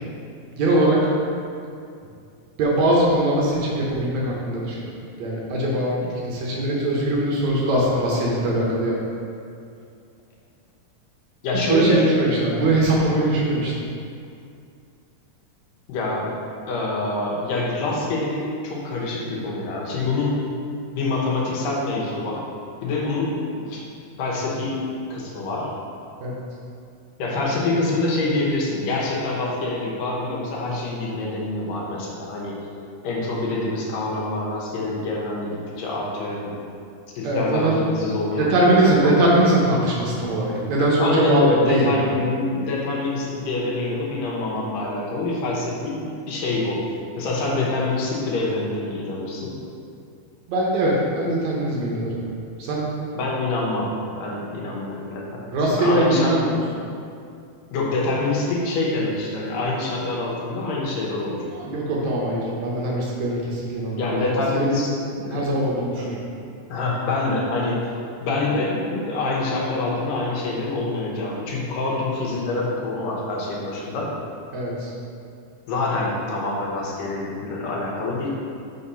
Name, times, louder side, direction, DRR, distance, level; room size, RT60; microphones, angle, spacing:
voice 1, 0.5-1.0 2.6-4.9 5.2-6.0 6.2-9.0 11.5-13.7 26.2-26.4 37.2-37.8 38.4-42.0 50.5-52.2 52.6-52.8 54.6-54.8 55.5-56.6 61.5-64.9 65.3-66.2 74.5-74.9, right 1 dB, 70° right, -4 dB, 2.0 m, -21 dB
voice 2, 11.4-12.1 15.9-16.4 16.7-20.4 20.9-22.5 22.8-23.9 24.2-24.8 25.1-25.7 27.2-32.6 33.0-36.6 37.2-39.2 41.0-46.8 47.2-49.6 53.1-53.9 54.2-56.4 57.7-61.5 64.0-65.6 66.7-67.9 68.2-74.1 75.7-78.3, left 2 dB, 80° left, -3 dB, 2.7 m, -26 dB
5.6 x 4.2 x 5.5 m, 2.4 s
omnidirectional pair, 3.8 m